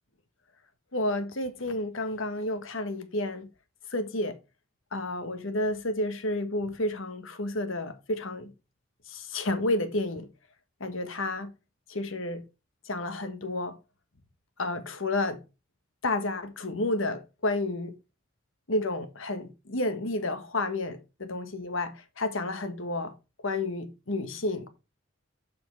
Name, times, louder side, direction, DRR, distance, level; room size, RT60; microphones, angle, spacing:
voice 1, 0.9-3.5 3.9-4.4 4.9-8.5 9.1-10.3 10.8-11.5 11.9-12.4 12.9-13.8 14.6-15.4 16.0-17.9 18.7-23.1 23.4-24.7, left 2 dB, 80° left, 1.4 m, -31 dB
7.1 x 6.1 x 4.6 m
head